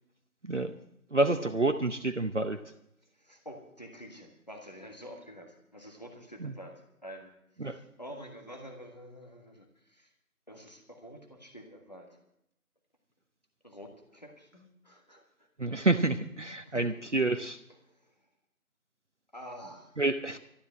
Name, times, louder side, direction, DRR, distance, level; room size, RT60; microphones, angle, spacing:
voice 1, 1.1-2.6 6.4-6.5 7.6-7.8 15.6-17.6 20.0-20.4, right 2 dB, 55° right, 8 dB, 0.8 m, -28 dB
voice 2, 3.1-10.1 10.5-12.2 13.6-15.5 16.6-16.9 17.7-18.1 19.3-20.2, equal, 30° left, 2 dB, 1.5 m, -48 dB
13.0 x 10.5 x 7.5 m, 0.76 s
figure-of-eight pair, 175°, 43 cm